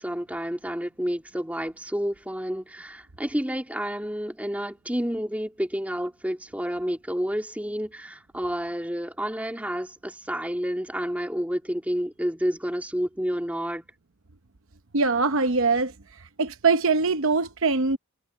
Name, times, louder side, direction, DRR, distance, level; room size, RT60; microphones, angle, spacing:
voice 1, 0.0-13.8, equal, 5° right, 2.3 m, -30 dB
voice 2, 14.9-15.9 16.4-18.0, right 4 dB, 60° right, 0.9 m, -22 dB
head